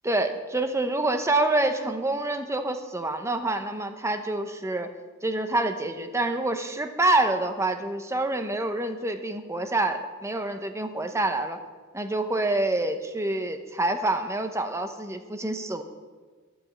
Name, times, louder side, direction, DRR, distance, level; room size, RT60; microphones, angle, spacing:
voice 1, 0.0-4.9 5.2-11.6 11.9-15.8, right 2 dB, 15° right, 7 dB, 0.9 m, -27 dB
12.0 x 8.3 x 7.4 m, 1.4 s
head